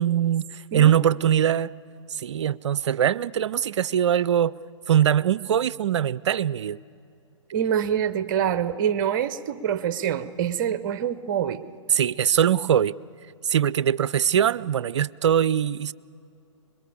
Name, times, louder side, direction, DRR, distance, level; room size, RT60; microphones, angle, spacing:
voice 1, 0.0-1.7 2.1-4.5 4.9-6.8 11.9-13.0 13.4-15.9, right 9 dB, 60° right, 0.5 m, -22 dB
voice 2, 7.5-11.6, right 9 dB, 40° right, 0.8 m, -25 dB
25.0 x 21.5 x 7.0 m
figure-of-eight pair, 125°, 17 cm